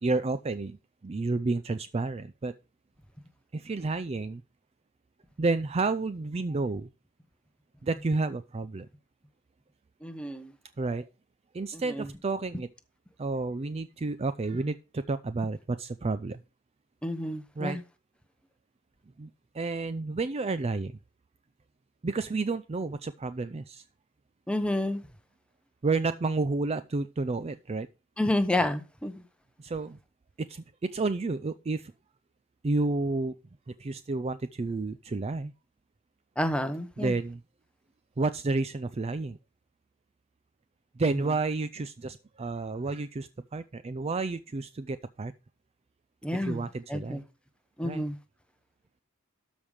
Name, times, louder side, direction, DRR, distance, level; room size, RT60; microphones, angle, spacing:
voice 1, 0.0-2.5 3.5-4.4 5.4-6.9 7.8-8.9 10.8-11.1 11.5-12.7 13.2-16.4 17.6-17.8 19.2-19.3 19.5-21.0 22.0-23.8 25.8-27.9 29.6-30.0 30.4-31.9 32.6-33.3 33.7-35.5 37.0-37.4 38.2-39.4 41.0-45.3 46.4-47.2 47.8-48.0, right 3 dB, 30° right, 13 dB, 0.4 m, -30 dB
voice 2, 10.0-10.5 11.7-12.1 17.0-17.8 24.5-25.0 28.2-29.2 36.4-37.1 41.2-41.3 46.2-47.2 47.8-48.2, left 1 dB, 5° left, 9 dB, 0.9 m, -30 dB
12.5 x 5.3 x 4.8 m, 0.30 s
head